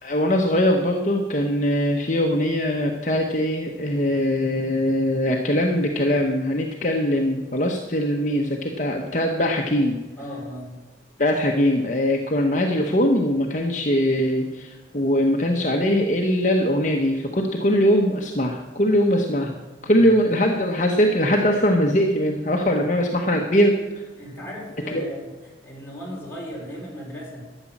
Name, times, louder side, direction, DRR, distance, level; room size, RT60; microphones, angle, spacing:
voice 1, 0.0-10.0 11.2-19.5 19.8-23.8 24.9-25.0, equal, 45° left, 2 dB, 1.1 m, -21 dB
voice 2, 10.2-10.7 19.3-19.5 19.9-20.1 24.2-25.3 25.6-27.5, equal, 15° left, -4 dB, 4.0 m, -36 dB
13.0 x 9.0 x 7.3 m, 1.1 s
head